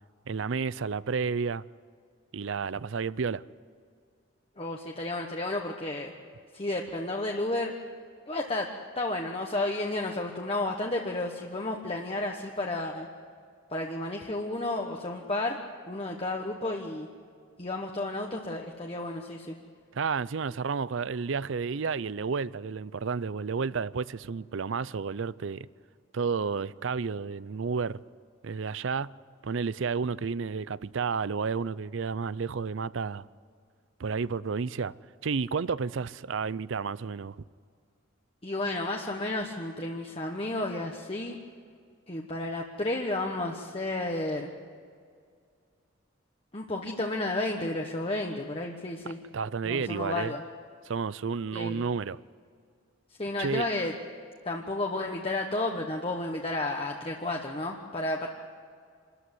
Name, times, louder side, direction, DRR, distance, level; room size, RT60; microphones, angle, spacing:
voice 1, 0.3-1.6 2.3-3.4 19.9-25.7 26.1-28.0 28.4-29.1 29.4-33.3 34.0-34.9 35.2-37.3 49.3-50.3 50.9-52.2 53.4-53.7, right 5 dB, 65° right, 0.5 m, -31 dB
voice 2, 4.6-6.1 6.5-7.7 8.3-13.1 13.7-17.1 17.6-19.5 38.4-41.4 42.1-44.5 46.5-49.2 49.6-50.4 51.5-51.8 53.2-53.9 54.4-58.3, left 2 dB, 30° left, 1.2 m, -32 dB
26.5 x 14.0 x 9.8 m
head